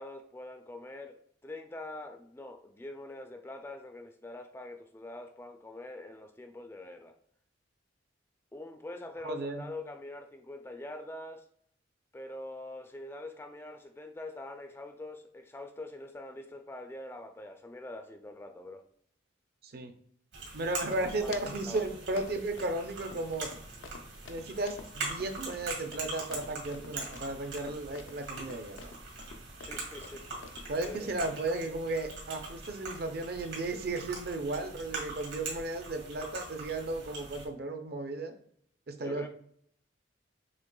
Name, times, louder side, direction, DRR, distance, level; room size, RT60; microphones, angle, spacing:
voice 1, 0.0-7.2 8.5-11.4 12.1-18.8 20.9-21.3 21.6-21.8 27.6-27.7 29.7-30.3 30.8-31.1 39.0-39.3, left 2 dB, 10° left, 6 dB, 0.3 m, -44 dB
voice 2, 9.2-9.7 19.6-19.9 20.5-23.5 24.3-28.9 30.7-38.3 38.9-39.3, right 2 dB, 50° right, 7 dB, 0.5 m, -35 dB
sound 1, 20.3-37.5, right 3 dB, 75° right, 1.8 m, -42 dB
sound 2, 20.6-31.2, left 4 dB, 90° left, 0.5 m, -50 dB
6.4 x 3.2 x 2.2 m, 0.64 s
head